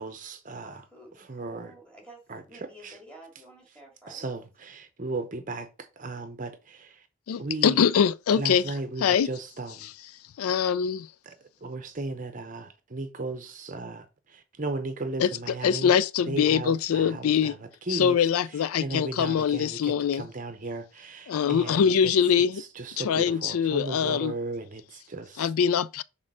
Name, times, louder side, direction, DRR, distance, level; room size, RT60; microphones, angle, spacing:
voice 1, 0.0-0.8 1.3-1.7 2.3-2.4 2.8-2.9 4.1-5.7 6.0-7.0 7.4-7.8 8.3-9.9 11.3-11.4 11.6-15.9 16.3-17.6 17.9-18.2 18.8-21.8 22.8-25.4, right 2 dB, 35° right, 0.7 m, -35 dB
voice 2, 0.7-4.3, right 1 dB, 5° left, 2.6 m, -51 dB
voice 3, 7.3-9.3 9.8-9.9 10.4-11.1 15.2-17.5 17.9-20.3 21.3-22.6 23.0-24.3 25.4-26.0, left 7 dB, 90° left, 0.4 m, -24 dB
6.4 x 3.8 x 6.1 m
head